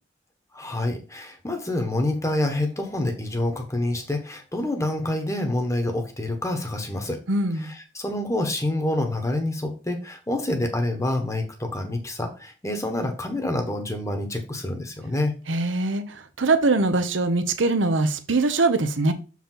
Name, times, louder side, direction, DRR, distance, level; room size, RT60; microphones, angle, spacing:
voice 1, 0.5-7.2 7.6-15.3, left 1 dB, 15° left, 4 dB, 1.3 m, -27 dB
voice 2, 7.3-7.7 15.5-19.1, right 3 dB, 80° right, 10 dB, 0.9 m, -22 dB
6.8 x 4.7 x 3.9 m, 0.34 s
head